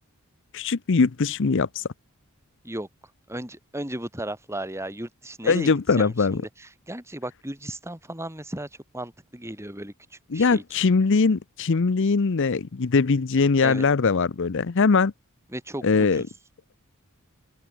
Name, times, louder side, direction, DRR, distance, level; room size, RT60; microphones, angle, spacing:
voice 1, 0.5-1.8 5.4-6.4 10.3-15.1 15.8-16.2, left 4 dB, 55° left, 0.6 m, -21 dB
voice 2, 3.3-8.7 8.9-9.9 10.3-10.6 13.6-13.8 15.5-16.3, right 1 dB, 10° right, 5.1 m, -35 dB
open air
head